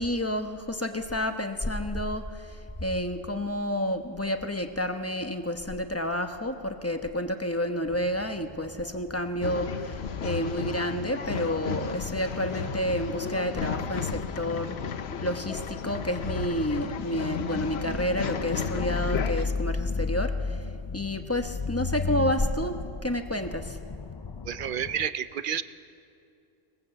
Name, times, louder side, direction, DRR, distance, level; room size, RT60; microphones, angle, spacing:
voice 1, 0.0-14.8 15.2-23.8, equal, 15° left, 6 dB, 1.0 m, -30 dB
sound 1, 7.8-25.1, left 4 dB, 40° left, 0.3 m, -36 dB
Male speech man speaking / Chatter / Rattle, 9.4-19.5, left 6 dB, 75° left, 1.1 m, -34 dB
voice 2, 24.4-25.6, right 8 dB, 55° right, 13 dB, 0.8 m, -30 dB
20.5 x 19.5 x 7.9 m, 2.5 s
omnidirectional pair, 1.1 m